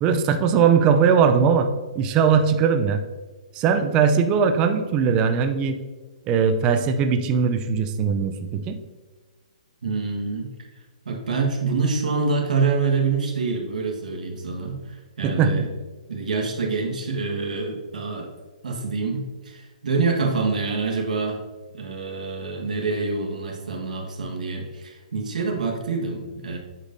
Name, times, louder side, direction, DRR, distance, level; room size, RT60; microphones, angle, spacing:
voice 1, 0.0-1.7 2.0-3.0 3.5-5.8 6.3-8.8 15.2-15.5, right 6 dB, 20° right, 7 dB, 0.4 m, -20 dB
voice 2, 9.8-10.5 11.0-15.7 16.1-18.3 18.6-21.4 21.7-26.6, right 4 dB, 80° right, 1 dB, 1.5 m, -26 dB
8.2 x 5.2 x 2.6 m, 1.3 s
hypercardioid pair, 160°, 4 cm